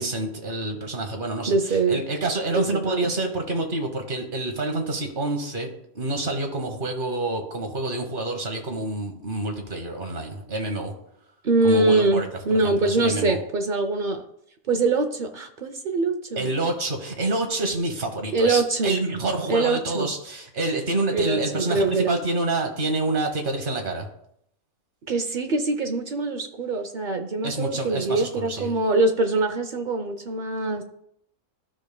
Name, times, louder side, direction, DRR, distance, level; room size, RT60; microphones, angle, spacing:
voice 1, 0.0-5.7 5.9-10.9 11.6-12.3 12.6-13.4 16.4-24.1 27.4-28.7, right 2 dB, 40° right, 3 dB, 1.2 m, -27 dB
voice 2, 1.4-2.0 2.5-3.1 11.4-14.2 14.7-16.5 18.3-19.0 19.5-20.1 21.1-22.2 25.1-30.8, right 3 dB, 65° right, 6 dB, 0.5 m, -23 dB
13.5 x 5.2 x 2.2 m, 0.73 s
omnidirectional pair, 1.5 m